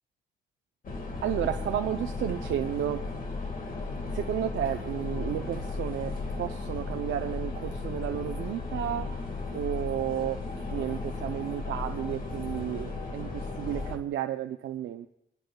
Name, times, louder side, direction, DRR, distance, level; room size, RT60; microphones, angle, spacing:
sound 1, 0.8-14.0, left 3 dB, 45° left, 1.9 m, -35 dB
voice 1, 1.2-3.0 4.1-9.2 9.5-10.4 10.7-15.1, right 11 dB, 75° right, 4 dB, 0.6 m, -32 dB
25.0 x 10.5 x 2.3 m, 0.78 s
cardioid pair, 90°, 20 cm